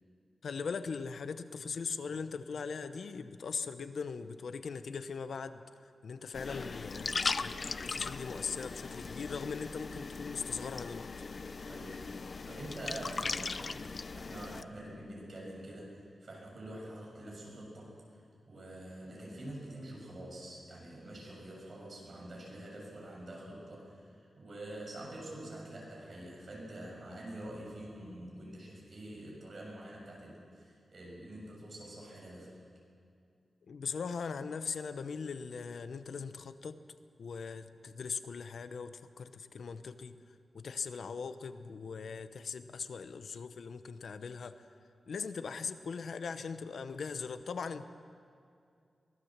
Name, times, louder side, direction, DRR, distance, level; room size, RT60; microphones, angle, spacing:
voice 1, 0.4-7.1 7.4-7.6 7.8-11.1 33.7-36.8 37.2-40.2 40.5-44.7 45.1-47.8, left 5 dB, 70° left, 11 dB, 0.8 m, -40 dB
sound 1, 6.3-14.6, left 4 dB, 40° left, 0.5 m, -39 dB
voice 2, 11.7-12.1 12.5-15.9 16.2-17.9 18.5-32.5, right 1 dB, 45° right, -2 dB, 6.7 m, -46 dB
23.5 x 17.5 x 7.4 m, 2.4 s
wide cardioid pair, 150°, 0 cm